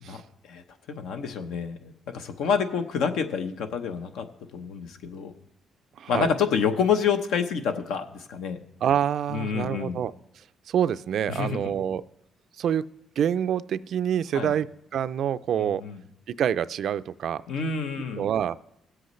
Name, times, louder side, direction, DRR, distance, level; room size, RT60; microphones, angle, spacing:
voice 1, 0.0-4.3 4.5-5.3 6.1-8.6 9.3-10.0 11.3-11.7 14.3-14.5 15.6-16.0 17.5-18.3, left 6 dB, 85° left, 7 dB, 0.8 m, -28 dB
voice 2, 6.0-6.3 8.8-10.1 10.7-12.0 12.6-12.9 13.2-15.8 16.3-17.4 18.2-18.6, right 9 dB, 70° right, 15 dB, 0.3 m, -26 dB
18.0 x 7.9 x 3.1 m, 0.83 s
cardioid pair, 90°, 0 cm